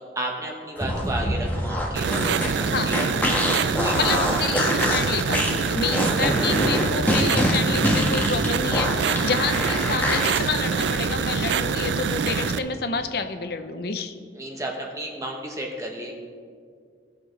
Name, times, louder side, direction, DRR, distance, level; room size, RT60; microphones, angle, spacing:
voice 1, 0.0-4.3 14.3-16.2, right 1 dB, 20° right, 0 dB, 1.1 m, -33 dB
sound 1, 0.8-10.4, left 1 dB, 10° left, 1.2 m, -25 dB
sound 2, 2.0-12.6, right 5 dB, 80° right, 0.4 m, -25 dB
voice 2, 2.6-2.9 3.9-14.1, left 5 dB, 60° left, 9 dB, 0.6 m, -29 dB
18.0 x 6.8 x 3.3 m, 2.1 s
head